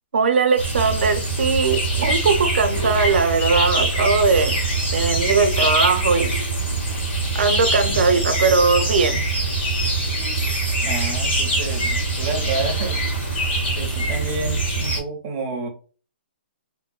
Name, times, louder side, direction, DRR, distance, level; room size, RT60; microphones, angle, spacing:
voice 1, 0.1-6.4 7.3-9.2, right 4 dB, 70° right, 0.6 m, -20 dB
sound 1, 0.6-15.0, right 2 dB, 70° left, 1.4 m, -23 dB
sound 2, 4.2-4.6 6.2-6.6 8.4-8.8 10.4-10.8, equal, 40° left, 0.6 m, -40 dB
voice 2, 10.8-13.0 13.7-15.7, right 3 dB, 20° right, 0.4 m, -29 dB
2.5 x 2.1 x 2.2 m
hypercardioid pair, 180°, 6 cm